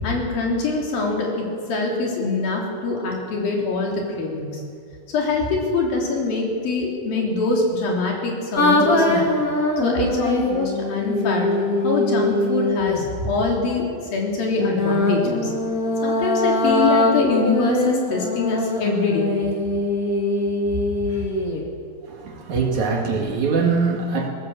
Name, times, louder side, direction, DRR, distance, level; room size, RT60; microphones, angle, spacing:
voice 1, 0.0-4.5 5.1-9.3 9.8-11.5 11.8-15.5 16.0-19.3, left 3 dB, 75° left, -1 dB, 5.1 m, -24 dB
sound 1, 8.6-13.1 14.6-21.6, left 2 dB, 25° left, 2.4 m, -22 dB
voice 2, 22.0-24.3, right 4 dB, 55° right, 1 dB, 3.2 m, -22 dB
20.5 x 17.5 x 7.6 m, 2.3 s
omnidirectional pair, 4.2 m